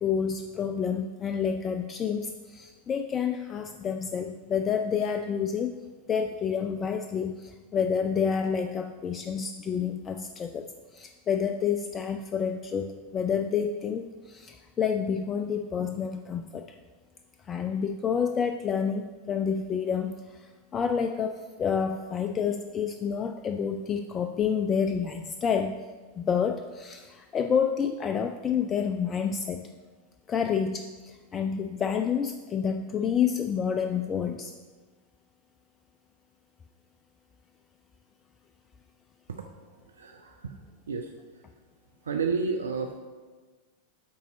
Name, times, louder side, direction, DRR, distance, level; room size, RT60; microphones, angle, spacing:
voice 1, 0.0-5.7 6.1-16.8 17.5-25.8 26.1-29.7 30.3-34.5, left 7 dB, 25° left, 7 dB, 0.3 m, -29 dB
voice 2, 39.9-40.6 40.9-41.1 42.0-42.9, right 5 dB, 70° right, 4 dB, 0.5 m, -30 dB
8.4 x 4.0 x 4.9 m, 1.3 s
figure-of-eight pair, 90°, 0 cm